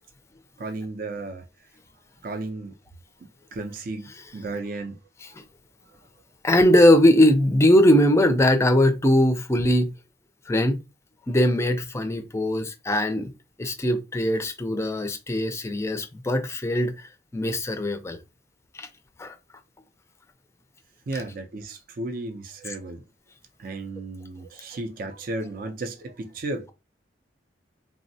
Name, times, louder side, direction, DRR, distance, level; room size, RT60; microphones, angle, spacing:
voice 1, 0.6-1.4 2.2-2.8 3.5-5.0 21.1-23.0 23.6-26.7, right 2 dB, 50° right, 0.4 m, -34 dB
voice 2, 6.4-9.9 10.5-10.8 11.3-13.3 13.6-18.2 18.8-18.9 19.2-19.4 22.7-22.8, left 1 dB, 15° left, 0.4 m, -20 dB
3.4 x 2.0 x 2.6 m
head